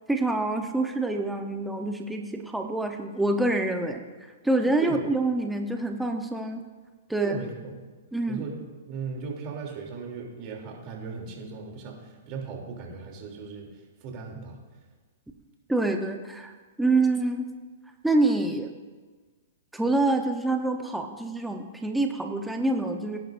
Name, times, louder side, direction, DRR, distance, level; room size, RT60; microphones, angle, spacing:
voice 1, 0.1-4.0 4.4-6.6 7.1-7.3 8.1-8.4 15.7-16.5 16.8-17.5 18.0-18.7 19.7-23.2, right 2 dB, 5° right, 3 dB, 0.9 m, -26 dB
voice 2, 7.2-7.8 8.3-8.5 8.9-13.7 14.0-14.6, right 5 dB, 40° right, 0 dB, 3.1 m, -37 dB
17.5 x 10.5 x 2.6 m, 1.4 s
hypercardioid pair, 130°, 0 cm